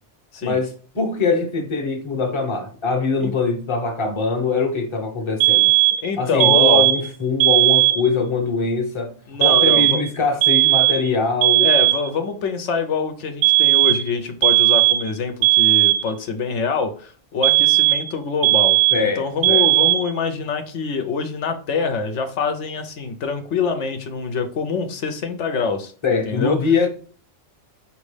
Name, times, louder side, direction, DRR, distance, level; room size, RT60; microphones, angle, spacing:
voice 1, 0.4-5.7 6.2-9.1 9.4-11.7 18.9-19.7 26.0-26.9, left 4 dB, 25° left, 0.8 m, -22 dB
sound 1, 5.4-6.1 6.4-7.1 7.4-8.1 9.4-10.1 10.4-11.1 11.4-12.1 13.4-14.1 14.4-15.1 15.4-16.1 17.4-18.1 18.4-19.1 19.4-20.1, right 18 dB, 80° right, 0.9 m, -16 dB
voice 2, 6.0-6.9 9.3-10.0 11.6-26.6, left 5 dB, 75° left, 1.0 m, -25 dB
5.2 x 3.0 x 3.2 m
omnidirectional pair, 1.2 m